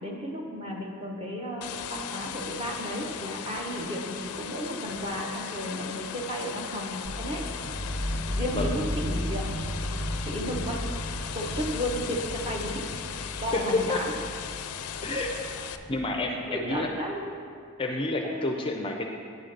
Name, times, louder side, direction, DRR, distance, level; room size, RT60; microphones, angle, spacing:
voice 1, 0.0-7.4 8.4-9.5 10.2-10.8 11.3-12.9 13.4-14.1 15.1-15.3 16.3-17.3 17.9-18.5, equal, 25° right, -1 dB, 1.0 m, -33 dB
sound 1, 1.6-15.8, left 8 dB, 80° left, 0.4 m, -38 dB
sound 2, 7.0-16.9, equal, 50° right, 2.0 m, -35 dB
voice 2, 15.9-16.9 17.8-19.1, left 2 dB, 25° left, 2 dB, 0.4 m, -30 dB
9.2 x 3.8 x 6.5 m, 2.2 s
head